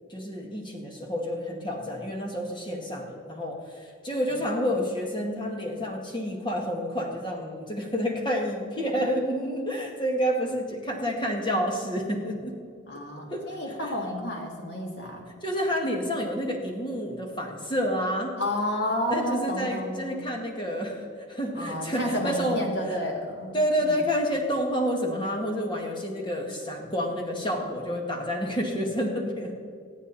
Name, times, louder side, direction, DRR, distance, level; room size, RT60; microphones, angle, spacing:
voice 1, 0.1-12.5 13.3-13.8 15.4-18.3 19.1-23.0 23.5-29.6, equal, 25° left, 1 dB, 2.0 m, -29 dB
voice 2, 12.9-15.3 18.4-20.3 21.5-24.0 28.1-28.2, left 1 dB, 55° left, -1 dB, 2.9 m, -31 dB
26.0 x 9.1 x 4.2 m, 2.3 s
head